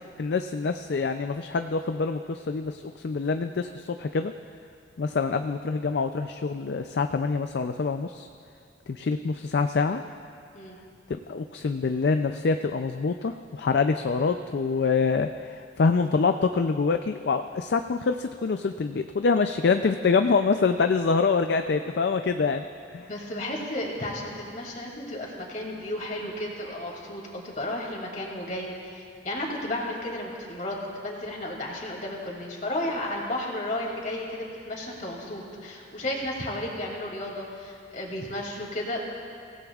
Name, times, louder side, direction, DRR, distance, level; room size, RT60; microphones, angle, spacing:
voice 1, 0.2-4.3 5.0-8.3 8.9-10.0 11.3-22.6 22.9-23.1, left 4 dB, 60° left, 7 dB, 0.4 m, -25 dB
voice 2, 23.1-39.0, left 1 dB, 45° left, -2 dB, 2.6 m, -33 dB
25.0 x 16.5 x 2.4 m, 2.4 s
head